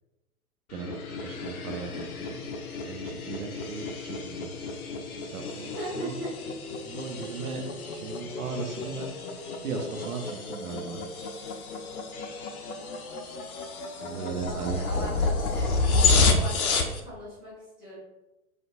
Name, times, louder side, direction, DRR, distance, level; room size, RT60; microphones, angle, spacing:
sound 1, 0.7-17.0, left 3 dB, 70° left, 0.5 m, -30 dB
voice 1, 0.7-2.5 2.8-4.5 5.1-6.2 6.8-7.6 7.9-11.0 14.0-15.3, right 5 dB, 70° right, 3 dB, 0.6 m, -37 dB
voice 2, 5.5-6.3 13.9-15.7 16.3-18.0, right 1 dB, ahead, -13 dB, 0.4 m, -39 dB
2.5 x 2.1 x 2.4 m, 1.0 s
figure-of-eight pair, 105°, 45 cm